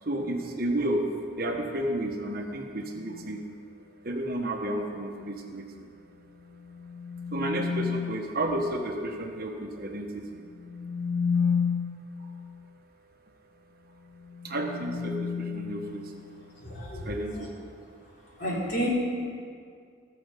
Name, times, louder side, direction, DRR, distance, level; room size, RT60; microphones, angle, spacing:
voice 1, 0.0-3.4 4.0-5.9 7.3-10.5 12.2-12.3 14.4-16.1 16.9-17.7, right 1 dB, 50° right, 2 dB, 1.3 m, -32 dB
sound 1, 2.9-3.4 6.5-8.3 10.5-12.2 14.1-16.5, left 6 dB, 70° left, 1.4 m, -31 dB
voice 2, 16.6-17.4 18.4-18.9, right 1 dB, 55° left, -8 dB, 3.9 m, -31 dB
18.5 x 6.9 x 5.2 m, 2.2 s
head